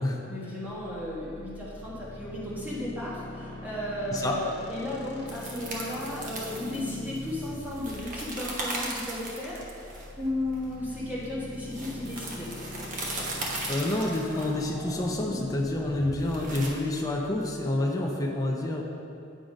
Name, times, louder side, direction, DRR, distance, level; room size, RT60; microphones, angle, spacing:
voice 1, 0.2-12.5, left 1 dB, 10° right, -8 dB, 1.6 m, -35 dB
sound 1, 0.8-17.9, left 2 dB, 55° left, 0.9 m, -42 dB
sound 2, 5.3-16.7, right 2 dB, 40° right, 1.0 m, -38 dB
voice 2, 13.7-18.8, left 1 dB, 20° left, -1 dB, 0.5 m, -28 dB
8.9 x 3.8 x 5.1 m, 2.6 s
head